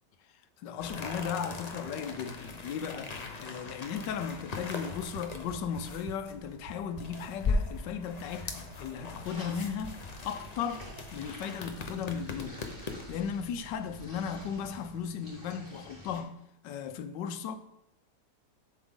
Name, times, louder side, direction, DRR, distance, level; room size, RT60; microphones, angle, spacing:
voice 1, 0.6-10.0 10.2-10.8 11.1-12.6 13.1-16.3 16.6-17.6, left 7 dB, 90° left, 1.3 m, -36 dB
sound 1, 0.8-13.2, left 3 dB, 45° left, 0.5 m, -39 dB
sound 2, 5.0-14.9, right 5 dB, 70° right, 0.7 m, -51 dB
sound 3, 9.2-16.2, equal, 10° right, 3.2 m, -51 dB
7.4 x 6.9 x 3.7 m
omnidirectional pair, 1.8 m